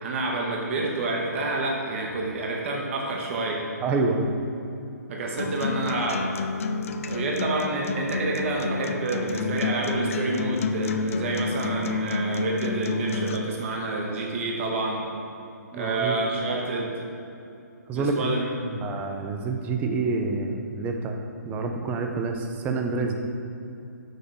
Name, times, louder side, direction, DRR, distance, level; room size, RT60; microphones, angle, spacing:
voice 1, 0.0-3.6 5.1-6.3 7.1-15.1 15.7-16.9 17.9-18.7, right 2 dB, 45° right, -1 dB, 1.1 m, -28 dB
voice 2, 3.8-4.3 15.7-16.2 17.9-18.3 18.6-21.2 21.4-23.1, right 3 dB, 15° right, 3 dB, 0.7 m, -27 dB
Acoustic guitar, 5.4-13.4, left 4 dB, 50° left, 0.5 m, -29 dB
6.7 x 5.0 x 7.0 m, 2.7 s
figure-of-eight pair, 135°, 9 cm